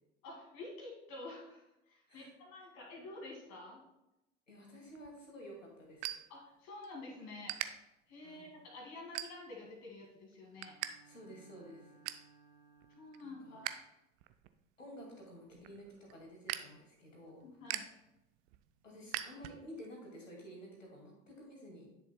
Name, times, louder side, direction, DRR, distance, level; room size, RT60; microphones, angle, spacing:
voice 1, 0.2-3.8 6.3-7.6 8.1-10.8 13.0-13.7 17.4-17.9, left 2 dB, 45° left, -1 dB, 2.3 m, -49 dB
voice 2, 4.5-6.1 8.2-8.5 11.0-11.9 13.2-13.6 14.8-17.6 18.8-21.9, equal, 80° left, 0 dB, 2.3 m, -52 dB
sound 1, 4.9-6.9 7.2-7.7 8.2-8.5 9.0-9.7 10.1-10.9 11.2-11.3 11.7-12.3 12.8-13.7 14.1-19.9, right 14 dB, 45° right, 0.6 m, -43 dB
Bowed string instrument, 10.5-13.6, right 5 dB, 10° right, 3.0 m, -64 dB
10.5 x 6.9 x 2.2 m, 0.91 s
figure-of-eight pair, 75°, 37 cm